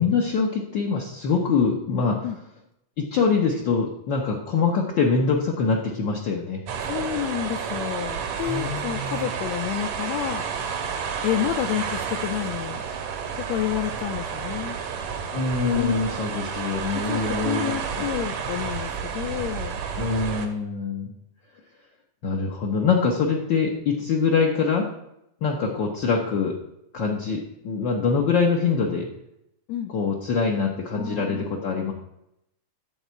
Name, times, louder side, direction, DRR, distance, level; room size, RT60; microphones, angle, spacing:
voice 1, 0.0-2.3 3.0-6.6 8.5-9.2 15.3-17.7 20.0-21.1 22.2-24.9 25.4-26.5 26.9-29.1 29.9-31.9, left 5 dB, 65° left, -1 dB, 1.1 m, -24 dB
sound 1, 6.7-20.5, right 6 dB, 85° right, 3.0 m, -31 dB
voice 2, 6.8-10.5 11.2-12.9 13.3-14.8 15.8-15.9 16.9-19.8 29.7-29.9 30.9-31.5, left 12 dB, 80° left, 9 dB, 1.6 m, -29 dB
12.0 x 4.3 x 8.2 m, 0.82 s
omnidirectional pair, 3.6 m